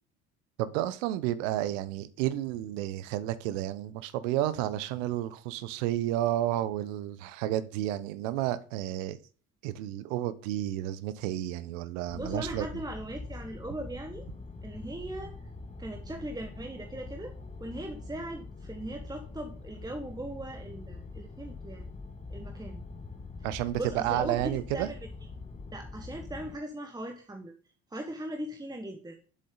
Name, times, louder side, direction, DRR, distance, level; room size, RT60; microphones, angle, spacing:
voice 1, 0.6-9.2 9.6-12.7 23.4-24.9, right 13 dB, 60° right, 0.9 m, -31 dB
sound 1, 12.1-26.6, left 3 dB, 15° left, 1.5 m, -44 dB
voice 2, 12.1-14.3 14.6-15.4 15.8-21.8 22.3-22.8 23.5-25.0 25.7-27.5 27.9-29.2, right 1 dB, 10° right, 1.3 m, -39 dB
9.9 x 7.7 x 3.9 m
figure-of-eight pair, 55°, 44 cm